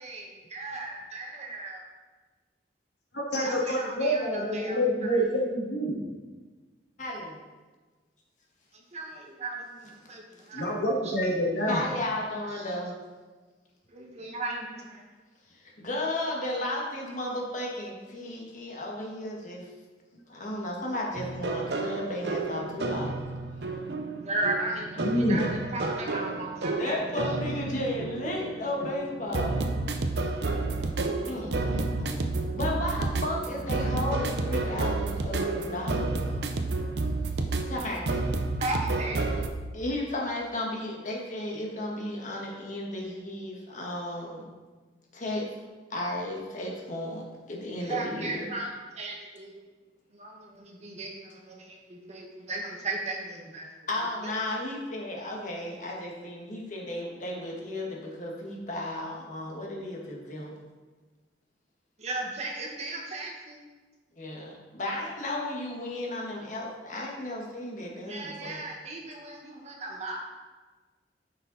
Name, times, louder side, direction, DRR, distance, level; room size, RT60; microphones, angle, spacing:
voice 1, 0.0-1.8 3.3-5.2 8.7-10.7 11.0-11.2 12.6-12.7 13.9-15.0 24.1-25.4 25.7-27.0 38.6-39.6 47.8-49.6 50.1-53.7 62.0-63.6 68.1-70.2, right 2 dB, 40° right, 0 dB, 1.5 m, -36 dB
voice 2, 3.1-6.0 10.5-11.8 25.0-25.5, equal, 80° left, -3 dB, 2.2 m, -27 dB
voice 3, 7.0-7.4 11.7-13.0 15.5-19.7 20.3-23.2 23.6-23.7 26.8-29.8 31.2-36.5 37.7-38.0 39.7-44.5 45.1-45.5 45.9-48.5 53.9-60.5 64.2-68.6, left 1 dB, 45° left, -2 dB, 1.7 m, -34 dB
sound 1, 21.2-39.5, right 2 dB, 70° right, 0.7 m, -30 dB
9.6 x 5.9 x 4.1 m, 1.3 s
head